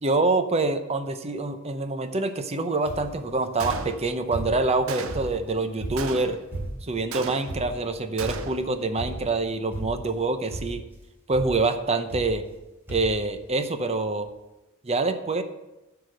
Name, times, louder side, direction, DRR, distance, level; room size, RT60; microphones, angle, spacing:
voice 1, 0.0-6.4 6.8-10.8 11.3-12.4 12.9-14.3 14.8-15.4, right 3 dB, 30° right, 9 dB, 0.7 m, -26 dB
sound 1, 2.9-3.2 3.6-4.7 5.1-7.0 7.5-7.9 8.2-8.6 9.0-9.4 9.7-10.2 10.5-10.9 11.3-11.6 12.1-12.6 12.9-13.2 14.0-14.1 14.3-14.4, right 1 dB, 10° right, 3.4 m, -36 dB
Gunshot gunfire, 3.6-4.3 4.9-5.4 6.0-6.6 7.1-7.8 8.2-8.8, right 5 dB, 70° right, 0.6 m, -36 dB
12.0 x 4.9 x 6.6 m, 1.0 s
head